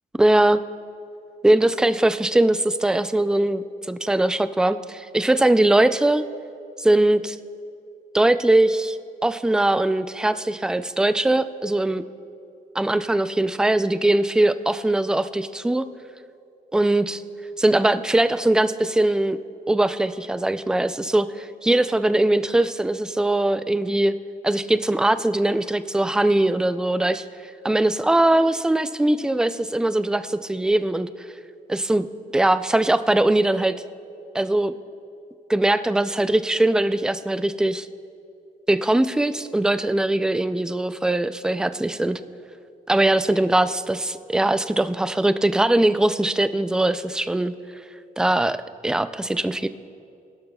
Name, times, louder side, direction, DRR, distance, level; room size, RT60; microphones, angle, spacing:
voice 1, 0.2-0.6 1.4-6.2 6.8-7.4 8.1-12.0 12.7-15.9 16.7-17.2 17.6-19.4 19.7-24.1 24.4-27.2 27.6-31.1 31.7-32.1 32.3-33.8 34.3-34.7 35.5-37.9 38.7-42.2 42.9-47.5 48.2-49.7, right 1 dB, 5° right, 12 dB, 0.3 m, -21 dB
20.5 x 12.0 x 2.3 m, 2.5 s
cardioid pair, 120°, 15 cm